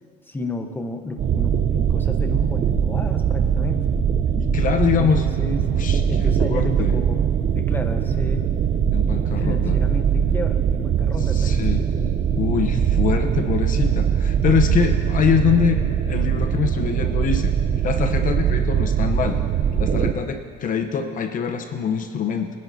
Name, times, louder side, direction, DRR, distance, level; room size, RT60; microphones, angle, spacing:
voice 1, 0.3-4.0 5.0-5.7 6.1-8.4 9.4-11.6, left 2 dB, 10° left, 5 dB, 1.1 m, -31 dB
sound 1, 1.2-20.1, right 8 dB, 45° right, 0.6 m, -21 dB
voice 2, 4.4-5.3 5.6-6.9 8.9-9.8 11.2-11.8 12.4-17.5 17.8-19.4 19.8-22.5, left 7 dB, 50° left, 6 dB, 0.9 m, -24 dB
24.0 x 10.5 x 2.8 m, 2.1 s
cardioid pair, 105°, 17 cm